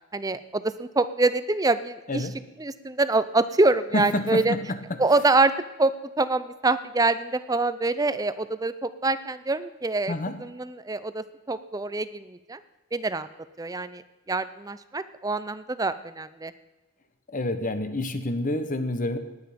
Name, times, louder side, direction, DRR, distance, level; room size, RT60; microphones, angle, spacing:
voice 1, 0.1-2.3 2.6-4.6 5.0-5.5 5.8-10.1 10.4-12.6 12.9-13.3 13.6-16.5, right 3 dB, 15° right, 14 dB, 0.5 m, -25 dB
voice 2, 3.9-4.6 10.1-10.4 17.3-19.2, left 1 dB, 35° left, 9 dB, 1.2 m, -28 dB
19.5 x 9.1 x 5.2 m, 1.2 s
head